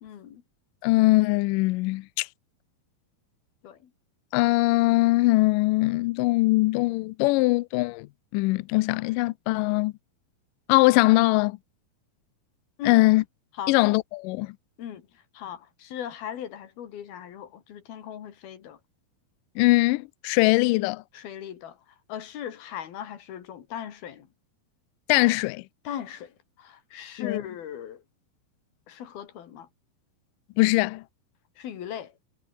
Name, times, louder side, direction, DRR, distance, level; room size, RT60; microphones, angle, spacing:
voice 1, 0.0-0.4 3.6-3.9 12.8-13.0 13.6-13.8 14.8-18.8 21.1-24.3 25.8-28.0 28.9-29.7 31.6-32.1, left 9 dB, 70° left, 4.2 m, -38 dB
voice 2, 0.8-2.3 4.3-8.1 8.3-9.9 10.7-11.6 12.9-13.2 13.7-14.5 19.6-21.0 25.1-25.6 27.2-27.4 30.6-31.0, left 21 dB, 90° left, 1.9 m, -21 dB
omnidirectional pair, 4.5 m